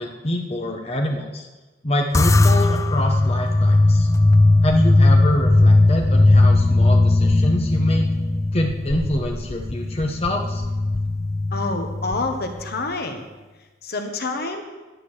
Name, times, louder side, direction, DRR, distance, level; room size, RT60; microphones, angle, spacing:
voice 1, 0.0-1.5 1.8-4.1 4.6-8.1 8.5-10.6, left 1 dB, 35° left, 2 dB, 1.1 m, -25 dB
sound 1, 2.1-12.7, left 2 dB, 15° left, 0.3 m, -18 dB
voice 2, 11.5-13.3 13.6-14.6, left 3 dB, 60° left, 5 dB, 1.3 m, -28 dB
10.0 x 9.1 x 6.5 m, 1.2 s
head